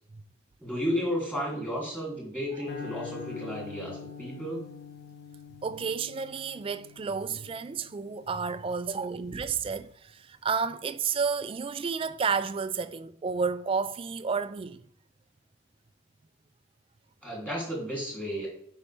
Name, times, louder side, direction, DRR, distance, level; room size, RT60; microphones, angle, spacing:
voice 1, 0.6-4.6 17.2-18.5, equal, 10° left, 2.9 m, -33 dB
sound 1, 2.7-9.0, left 7 dB, 50° left, 1.3 m, -45 dB
voice 2, 5.6-14.8, right 5 dB, 25° right, 0.3 m, -31 dB
8.4 x 5.4 x 3.4 m
head